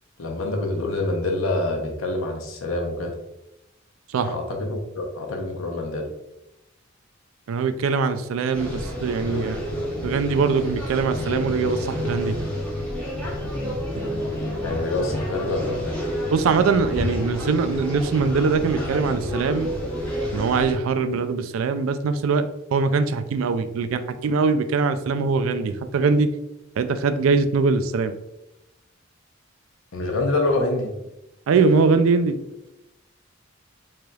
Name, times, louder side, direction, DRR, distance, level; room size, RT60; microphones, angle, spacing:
voice 1, 0.2-3.1 4.2-6.1 14.6-16.1 29.9-30.9, left 2 dB, 70° left, 1 dB, 0.7 m, -26 dB
voice 2, 7.5-9.6 10.0-12.3 14.0-14.1 16.3-19.7 20.3-26.3 26.8-28.1 31.5-32.4, right 4 dB, 75° right, 10 dB, 0.3 m, -22 dB
sound 1, 8.5-20.7, equal, 5° left, 0.8 m, -29 dB
3.9 x 3.2 x 2.3 m, 0.90 s
head